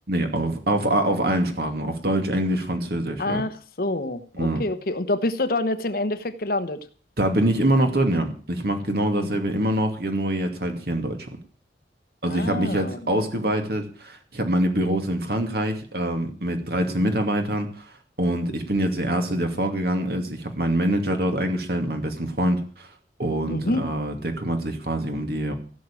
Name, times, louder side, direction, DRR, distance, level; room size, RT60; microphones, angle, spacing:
voice 1, 0.1-3.4 4.3-4.6 7.2-11.2 12.2-17.9 18.2-22.9 23.2-25.5, right 1 dB, 60° right, 5 dB, 2.6 m, -24 dB
voice 2, 3.2-6.8 9.1-9.4 12.2-13.1 23.5-23.9, left 2 dB, 55° left, 11 dB, 1.1 m, -27 dB
16.0 x 6.3 x 9.0 m, 0.43 s
head